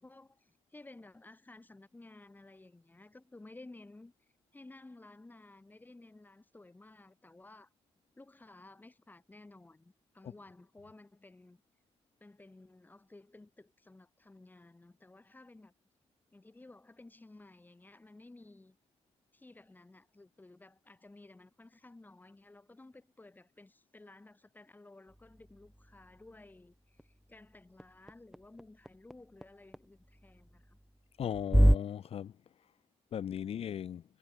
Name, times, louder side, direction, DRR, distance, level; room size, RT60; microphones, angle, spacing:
voice 1, 0.0-4.1 4.5-7.7 8.1-11.6 12.2-15.7 16.3-18.8 19.3-30.8, left 2 dB, 15° left, 4.8 m, -55 dB
sound 1, 25.1-31.8, equal, ahead, 0.6 m, -32 dB
voice 2, 31.2-32.3 33.1-34.0, left 9 dB, 70° left, 0.7 m, -37 dB
wide cardioid pair, 135°, 11 cm